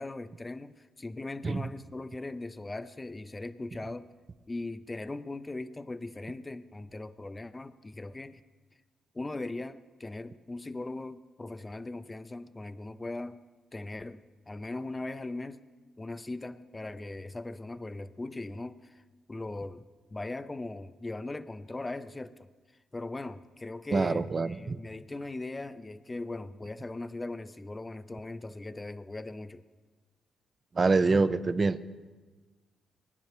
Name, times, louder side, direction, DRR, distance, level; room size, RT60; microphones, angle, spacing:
voice 1, 0.0-4.1 4.5-8.4 9.1-13.4 13.7-15.6 16.0-19.0 19.3-22.5 22.9-29.6, left 2 dB, 25° left, 12 dB, 0.5 m, -39 dB
voice 2, 23.9-24.8 30.8-31.8, right 3 dB, 40° right, 12 dB, 0.5 m, -25 dB
19.5 x 10.0 x 3.0 m, 1.3 s
hypercardioid pair, 50°, 0 cm